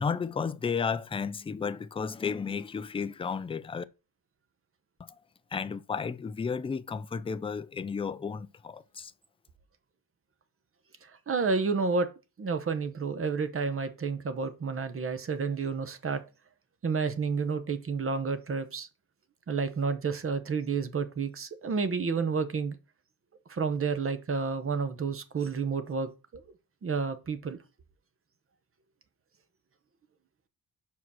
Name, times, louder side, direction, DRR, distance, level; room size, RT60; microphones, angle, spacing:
voice 1, 0.0-3.8 5.0-5.1 5.5-9.1, left 5 dB, 15° left, 0.3 m, -33 dB
voice 2, 11.0-12.1 12.4-16.2 16.8-18.9 19.5-22.8 23.5-26.1 26.8-27.6, right 5 dB, 35° right, 0.9 m, -30 dB
5.6 x 4.7 x 6.2 m
wide cardioid pair, 140°, 36 cm